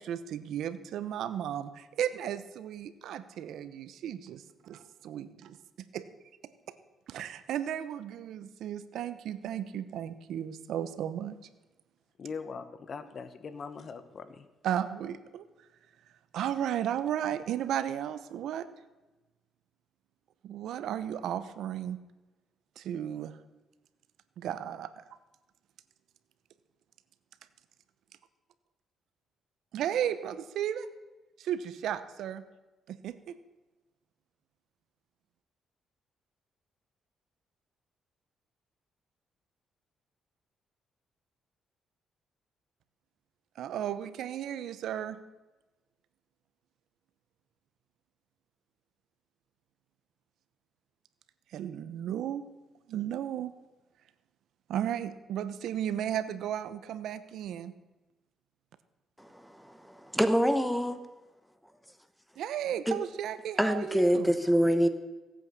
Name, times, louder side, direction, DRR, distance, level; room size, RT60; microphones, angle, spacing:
voice 1, 0.0-5.6 5.9-6.0 7.1-11.4 14.6-15.5 16.3-18.7 20.4-22.0 22.8-23.3 24.4-24.9 29.7-30.9 31.4-32.4 32.9-33.4 43.6-45.2 51.5-52.4 52.9-53.5 54.7-57.7 62.4-64.3, right 10 dB, 75° right, 13 dB, 0.9 m, -34 dB
voice 2, 12.2-14.5, left 5 dB, 50° left, 11 dB, 1.2 m, -41 dB
voice 3, 59.2-61.0 62.9-63.0 63.6-64.9, equal, ahead, 10 dB, 1.0 m, -26 dB
16.0 x 8.9 x 6.9 m, 1.1 s
cardioid pair, 90°, 0 cm